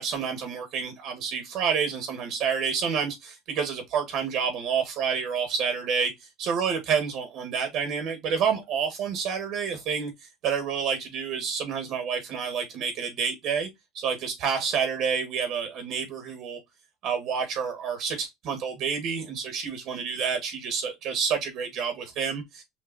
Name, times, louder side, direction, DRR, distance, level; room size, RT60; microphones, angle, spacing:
voice 1, 0.0-6.1 6.4-10.1 10.4-13.7 13.9-16.6 17.0-22.6, right 6 dB, 60° right, 1.5 m, -29 dB
6.5 x 2.7 x 2.6 m
cardioid pair, 135°, 0 cm